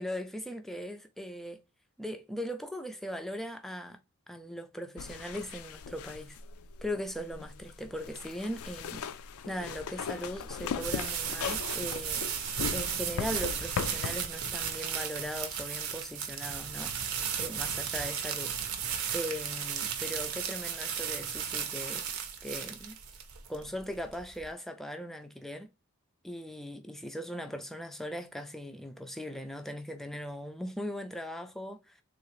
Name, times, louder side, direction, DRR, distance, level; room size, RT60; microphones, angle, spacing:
voice 1, 0.0-1.6 2.0-4.0 4.3-6.4 6.8-9.1 9.5-12.3 12.7-18.5 19.1-22.1 22.4-23.0 23.5-25.7 26.2-32.0, equal, ahead, 0.3 m, -39 dB
sound 1, 5.0-14.7, left 6 dB, 80° left, 0.4 m, -39 dB
sound 2, 9.6-24.5, right 7 dB, 80° right, 0.7 m, -35 dB
3.7 x 2.4 x 3.0 m
head